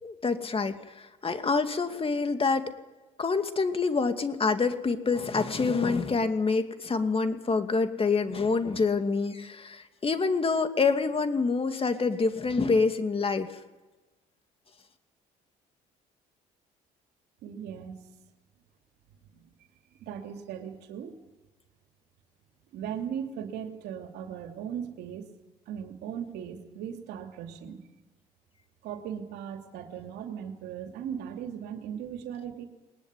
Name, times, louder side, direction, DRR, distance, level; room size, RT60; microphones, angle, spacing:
voice 1, 0.0-2.7 3.2-13.5, left 4 dB, 35° left, 8 dB, 2.5 m, -27 dB
voice 2, 17.4-18.0 19.3-19.5 19.9-21.2 22.7-25.3 25.7-27.8 28.8-32.7, right 8 dB, 75° right, 5 dB, 2.7 m, -38 dB
21.5 x 19.5 x 9.8 m, 1.1 s
hypercardioid pair, 60°, 17 cm